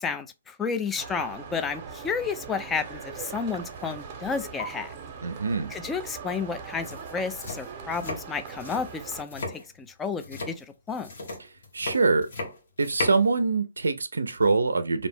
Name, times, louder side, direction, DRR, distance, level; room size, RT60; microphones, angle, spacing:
voice 1, 0.0-5.0 5.7-11.1, left 5 dB, 15° left, 0.3 m, -32 dB
sound 1, 1.0-9.2, right 6 dB, 40° right, 0.7 m, -41 dB
sound 2, 3.8-4.0 4.3-4.6 6.3-6.4 6.7-13.3, left 2 dB, 65° left, 1.1 m, -37 dB
voice 2, 5.2-5.7 11.7-12.3 12.8-15.1, right 4 dB, 90° right, 0.3 m, -24 dB
2.5 x 2.0 x 3.4 m
hypercardioid pair, 140°, 0 cm